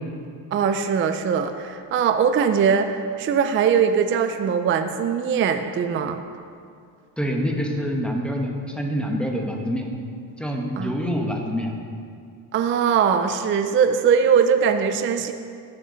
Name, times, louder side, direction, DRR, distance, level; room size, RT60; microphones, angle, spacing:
voice 1, 0.5-6.2 10.8-10.9 12.5-15.3, right 7 dB, 30° right, 8 dB, 0.4 m, -21 dB
voice 2, 7.2-9.8 10.4-11.7, equal, ahead, 1 dB, 1.1 m, -26 dB
10.5 x 7.9 x 5.0 m, 2.3 s
cardioid pair, 135°, 45 cm